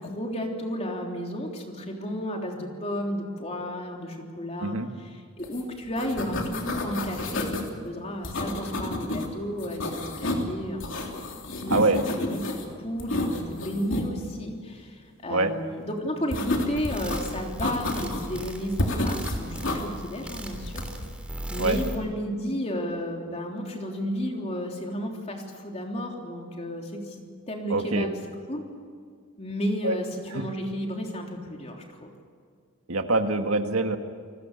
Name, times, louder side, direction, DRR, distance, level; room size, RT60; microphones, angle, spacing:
voice 1, 0.0-10.8 11.6-12.4 12.7-20.8 21.5-28.1 28.5-28.6 29.4-32.1, equal, 30° left, 1 dB, 3.4 m, -33 dB
sound 1, 5.4-5.6 5.9-7.7 8.2-9.3 9.6-10.5 10.8-12.7 13.0-14.1 16.3-17.2 17.6-18.4 18.8-19.8 20.6-21.1, left 1 dB, 60° left, 3.3 m, -30 dB
voice 2, 11.7-12.0 15.3-15.5 21.6-21.8 27.7-28.1 29.8-30.0 30.3-30.4 32.9-34.0, right 2 dB, 75° right, 6 dB, 1.8 m, -24 dB
sound 2, 16.7-22.0, right 1 dB, 5° right, 3.1 m, -37 dB
29.5 x 19.5 x 6.8 m, 2.1 s
head